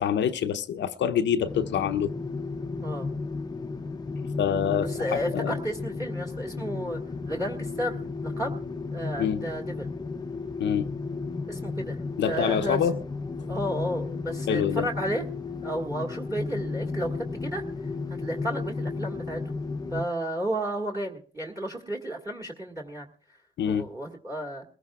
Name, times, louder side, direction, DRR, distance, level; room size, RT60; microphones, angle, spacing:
voice 1, 0.0-2.1 4.4-5.5 9.2-9.5 10.6-10.9 12.2-13.0 14.5-14.9 23.6-23.9, left 8 dB, 65° left, 0.7 m, -26 dB
sound 1, 1.5-20.0, left 4 dB, 20° left, 0.7 m, -34 dB
voice 2, 5.0-7.0 7.3-8.0 8.2-8.6 8.9-9.9 11.5-12.8 13.5-15.2 15.6-17.1 17.4-17.6 18.2-19.4 19.9-23.1 23.7-24.6, right 1 dB, 15° right, 1.8 m, -32 dB
22.0 x 15.0 x 2.4 m
cardioid pair, 90°, 20 cm